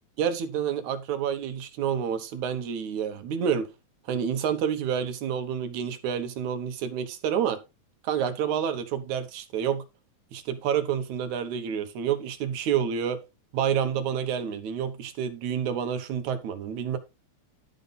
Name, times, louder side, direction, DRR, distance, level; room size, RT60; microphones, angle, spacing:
voice 1, 0.2-3.7 4.1-7.6 8.0-9.8 10.3-13.2 13.5-17.0, right 8 dB, 75° right, 2.4 m, -28 dB
11.5 x 5.3 x 4.0 m
omnidirectional pair, 3.4 m